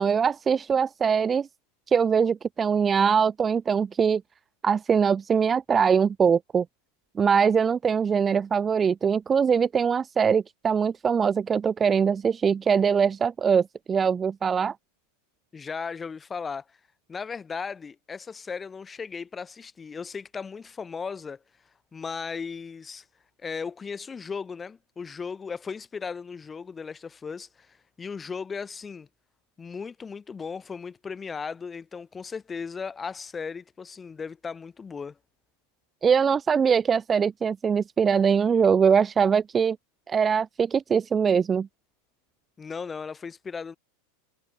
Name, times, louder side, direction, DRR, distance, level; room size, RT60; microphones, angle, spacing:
voice 1, 0.0-1.5 1.9-4.2 4.6-6.6 7.2-14.7 36.0-39.8 40.1-41.7, right 6 dB, 20° right, 1.2 m, -22 dB
voice 2, 15.5-16.8 17.1-21.4 21.9-23.1 23.4-29.1 29.6-35.2 42.6-43.8, left 5 dB, 20° left, 6.9 m, -36 dB
supercardioid pair, 120°, 0 cm